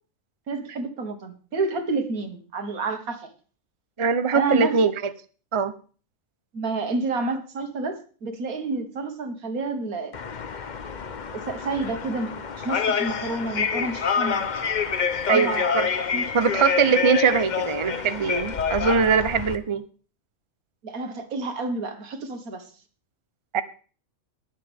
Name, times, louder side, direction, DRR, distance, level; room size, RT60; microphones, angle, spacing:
voice 1, 0.5-3.3 4.3-4.9 6.5-10.1 11.3-14.5 15.3-15.7 16.1-16.3 20.8-22.6, right 3 dB, 75° right, 7 dB, 2.0 m, -29 dB
voice 2, 4.0-5.1 5.5-5.7 15.3-15.9 16.3-19.8 23.5-23.6, right 6 dB, 35° right, 12 dB, 0.5 m, -22 dB
sound 1, 10.1-19.6, left 6 dB, 40° left, 0.8 m, -27 dB
21.5 x 7.6 x 3.5 m, 0.38 s
omnidirectional pair, 1.5 m